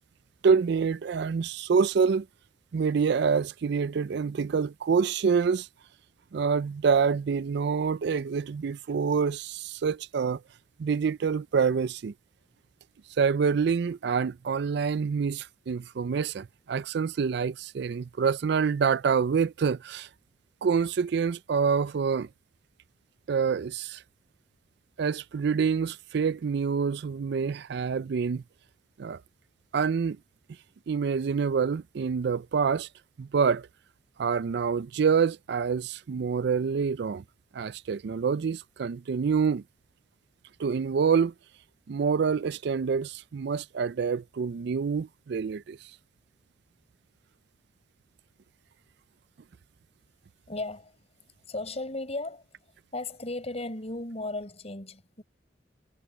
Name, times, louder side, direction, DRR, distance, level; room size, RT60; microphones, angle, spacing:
voice 1, 0.4-2.3 2.7-5.7 6.3-10.4 10.8-12.1 13.2-20.1 20.6-22.3 23.3-24.0 25.0-28.4 29.0-29.2 29.7-30.2 30.9-32.9 33.2-33.7 34.2-37.2 37.5-39.6 40.6-41.3 41.9-45.8, right 6 dB, 65° right, 0.4 m, -26 dB
voice 2, 50.5-51.0 51.5-52.5 52.9-55.2, left 2 dB, 35° left, 5.4 m, -35 dB
head